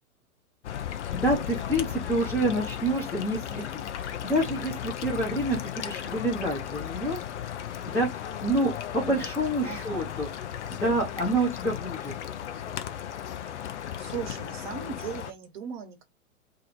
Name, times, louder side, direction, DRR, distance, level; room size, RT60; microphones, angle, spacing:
sound 1, 0.6-15.3, left 10 dB, 55° left, 0.7 m, -35 dB
voice 1, 1.1-7.2 7.9-10.3 10.8-12.1, right 1 dB, 5° left, 0.7 m, -28 dB
voice 2, 9.6-10.1 14.0-16.0, right 7 dB, 35° right, 1.1 m, -38 dB
2.6 x 2.5 x 4.2 m
figure-of-eight pair, 110°, 42 cm